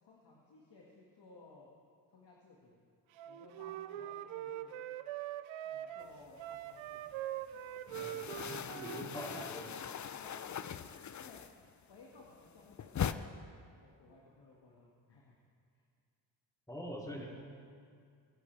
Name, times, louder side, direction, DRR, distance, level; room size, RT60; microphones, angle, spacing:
voice 1, 0.0-1.7 2.1-2.8 3.3-4.8 5.6-7.6 7.9-8.2 8.7-9.6 10.2-11.4 11.9-15.4 15.7-15.8, left 3 dB, 60° left, -3 dB, 2.0 m, -59 dB
Wind instrument woodwind instrument, 3.2-9.5, right 12 dB, 80° right, 0.6 m, -43 dB
sound 1, 6.1-7.1 7.4-11.8 12.1-13.1, left 8 dB, 40° left, 0.6 m, -41 dB
voice 2, 7.9-9.7 16.7-17.3, equal, 10° left, -3 dB, 3.1 m, -45 dB
22.0 x 10.0 x 3.5 m, 2.3 s
supercardioid pair, 55°, 46 cm